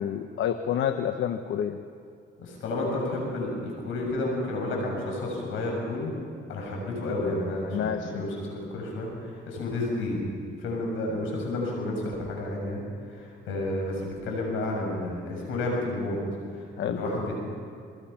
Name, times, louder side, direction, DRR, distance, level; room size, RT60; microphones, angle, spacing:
voice 1, 0.0-1.8 7.7-8.2 16.8-17.0, left 9 dB, 70° left, 8 dB, 1.1 m, -28 dB
voice 2, 2.4-6.1 6.5-10.3 10.6-12.8 13.1-16.2 16.8-17.3, left 2 dB, 90° left, 0 dB, 7.7 m, -31 dB
27.5 x 22.0 x 5.9 m, 2.3 s
cardioid pair, 90°, 20 cm